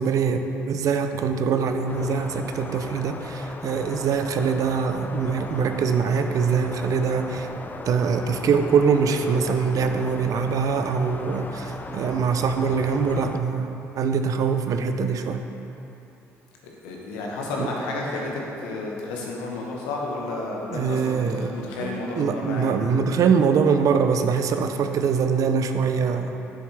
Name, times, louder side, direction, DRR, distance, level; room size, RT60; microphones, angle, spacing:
voice 1, 0.0-7.5 7.8-15.4 17.6-17.7 20.7-21.5 21.8-26.4, right 6 dB, 60° right, 7 dB, 0.5 m, -23 dB
sound 1, 1.9-13.4, left 3 dB, 30° left, 0.5 m, -37 dB
voice 2, 16.6-22.7, left 2 dB, 85° left, -2 dB, 1.1 m, -31 dB
7.1 x 7.0 x 3.3 m, 2.9 s
supercardioid pair, 60°, 7 cm